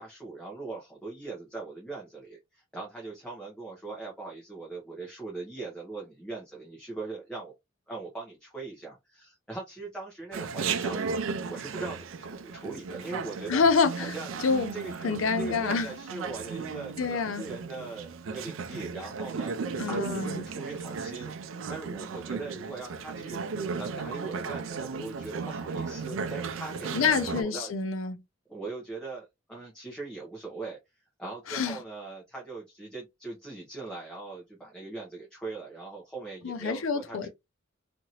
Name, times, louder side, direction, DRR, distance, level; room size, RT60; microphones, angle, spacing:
voice 1, 0.0-7.5 7.9-13.6 13.9-14.4 14.7-15.1 15.4-19.5 19.8-23.4 23.8-27.7 28.5-30.8 31.2-37.3, right 3 dB, 5° left, 0.8 m, -40 dB
Chatter, 10.3-27.4, right 5 dB, 75° right, 0.4 m, -35 dB
voice 2, 13.5-14.1 14.4-14.7 15.0-15.9 17.0-17.5 19.8-20.5 26.9-28.2 31.5-31.8 36.4-37.3, left 5 dB, 80° left, 0.5 m, -27 dB
2.8 x 2.6 x 2.8 m
head